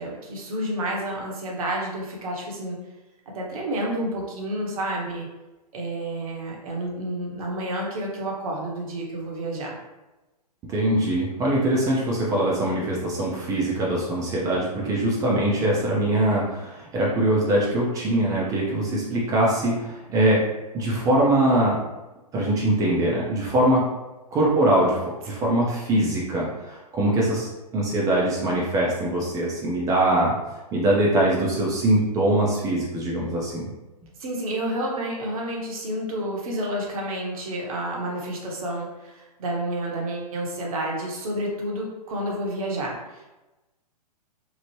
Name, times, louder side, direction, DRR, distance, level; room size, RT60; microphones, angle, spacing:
voice 1, 0.0-2.8 3.3-5.3 5.7-9.8 25.4-25.5 34.2-43.3, right 1 dB, 60° right, -1 dB, 0.9 m, -30 dB
voice 2, 10.6-20.4 20.7-21.8 22.3-23.9 24.3-25.0 25.2-30.4 30.7-33.7, right 1 dB, 15° right, -4 dB, 0.4 m, -22 dB
3.0 x 2.0 x 3.0 m, 1.1 s
figure-of-eight pair, 120°, 21 cm